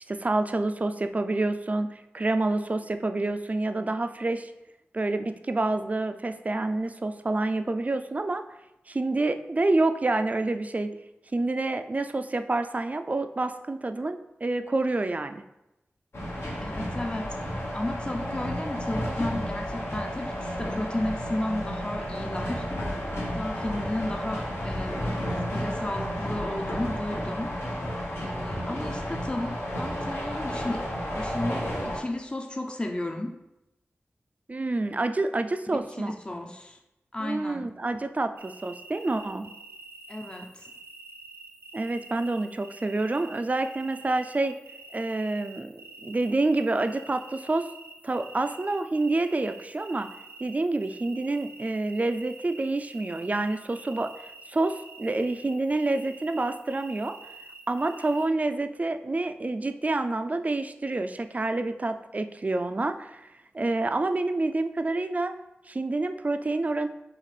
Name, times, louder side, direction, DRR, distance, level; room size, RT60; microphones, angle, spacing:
voice 1, 0.1-4.5 4.9-8.4 8.9-10.9 11.3-15.4 34.5-36.2 37.2-39.5 41.7-44.6 44.9-45.7 46.0-47.7 48.0-50.1 50.4-57.1 57.7-63.3 63.5-65.3 65.7-66.9, right 2 dB, 35° right, 8 dB, 0.4 m, -28 dB
sound 1, 16.1-32.0, equal, 70° left, 1.0 m, -32 dB
voice 2, 16.6-22.6 23.1-27.6 28.2-30.8 31.1-33.4 35.7-36.8 37.1-37.7 40.1-40.7, left 1 dB, 25° left, 3 dB, 0.5 m, -34 dB
sound 2, 38.4-58.3, right 3 dB, 90° right, 0.6 m, -47 dB
6.4 x 2.5 x 3.3 m, 0.90 s
cardioid pair, 45°, 4 cm